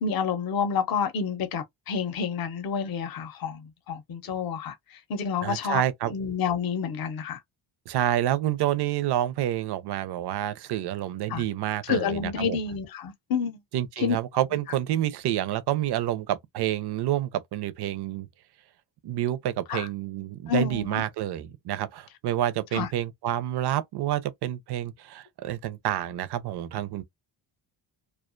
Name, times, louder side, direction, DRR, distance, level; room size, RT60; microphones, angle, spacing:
voice 1, 0.0-4.7 5.1-7.4 11.3-11.4 11.8-13.6 14.0-14.2 19.7-19.9 20.5-21.0 22.7-22.9, left 6 dB, 50° left, 0.7 m, -29 dB
voice 2, 5.4-6.1 7.9-12.6 13.7-18.3 19.0-27.0, right 12 dB, 55° right, 0.5 m, -28 dB
2.3 x 2.2 x 2.4 m
cardioid pair, 140°, 48 cm